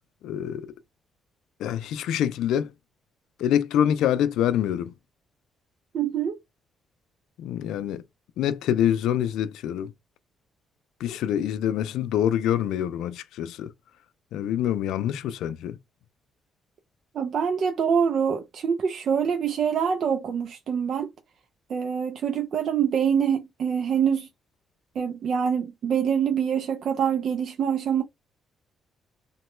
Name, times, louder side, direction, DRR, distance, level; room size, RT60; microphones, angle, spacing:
voice 1, 0.2-0.7 1.6-2.7 3.4-4.9 7.4-8.0 8.4-9.9 11.0-13.7 14.3-15.8, left 10 dB, 85° left, 0.3 m, -25 dB
voice 2, 5.9-6.4 17.1-21.1 21.7-24.3 25.0-28.0, right 7 dB, 60° right, 0.5 m, -25 dB
3.0 x 2.2 x 3.0 m
cardioid pair, 90°, 0 cm